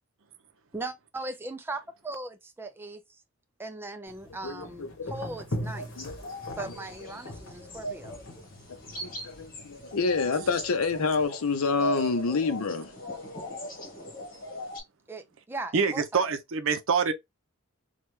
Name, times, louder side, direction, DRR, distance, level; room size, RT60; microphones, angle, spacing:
voice 1, 0.7-3.2 3.6-5.9 6.6-8.2 15.1-16.2, right 2 dB, 10° right, 0.3 m, -39 dB
sound 1, 4.1-11.2, equal, 60° left, 1.0 m, -41 dB
voice 2, 4.4-5.1 6.0-6.2 9.0-12.9, left 4 dB, 80° left, 0.6 m, -28 dB
sound 2, 5.7-14.8, right 1 dB, 40° left, 1.2 m, -39 dB
voice 3, 15.7-17.1, right 5 dB, 65° right, 0.5 m, -26 dB
3.2 x 2.3 x 3.0 m
head